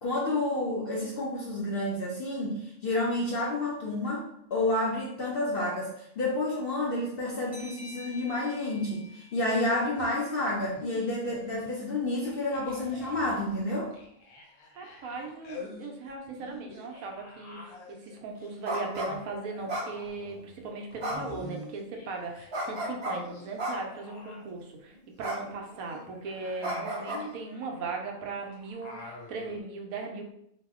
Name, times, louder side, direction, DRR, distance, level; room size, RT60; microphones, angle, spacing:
voice 1, 0.0-13.9 26.7-26.8, left 2 dB, 60° left, -4 dB, 0.6 m, -30 dB
sound 1, 7.5-10.8, left 1 dB, ahead, 0.6 m, -50 dB
sound 2, 10.0-11.9 12.2-22.5 22.7-29.6, left 2 dB, 85° left, 1.2 m, -48 dB
voice 2, 14.8-30.3, right 3 dB, 80° right, 2 dB, 1.0 m, -38 dB
sound 3, 18.6-19.1 19.7-20.4 21.0-21.4 22.5-23.1 23.6-24.0 25.2-25.4 25.7-26.0 26.6-27.2, right 1 dB, 50° right, 1.2 m, -33 dB
2.8 x 2.0 x 3.5 m, 0.74 s
omnidirectional pair, 1.5 m